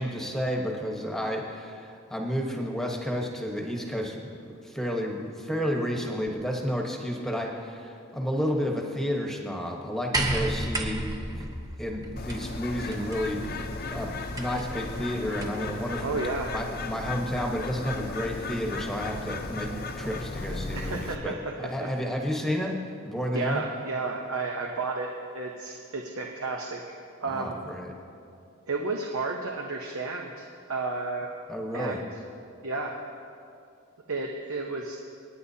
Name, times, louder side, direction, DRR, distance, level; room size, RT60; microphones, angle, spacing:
voice 1, 0.0-11.5 11.8-13.4 13.8-16.1 16.5-19.7 20.0-22.8 23.0-23.6 27.2-27.9 31.5-32.0, equal, ahead, 0 dB, 1.1 m, -31 dB
sound 1, 10.1-15.7 16.8-16.9, right 1 dB, 15° right, 0.8 m, -33 dB
Bird, 12.2-21.2, left 3 dB, 45° left, 0.7 m, -35 dB
voice 2, 16.0-16.5 20.7-21.4 21.8-21.9 23.3-26.8 27.2-27.6 28.7-31.3 31.7-32.1 32.6-33.0 34.1-35.0, right 3 dB, 75° right, 1 dB, 0.9 m, -32 dB
27.0 x 9.9 x 2.8 m, 2.5 s
head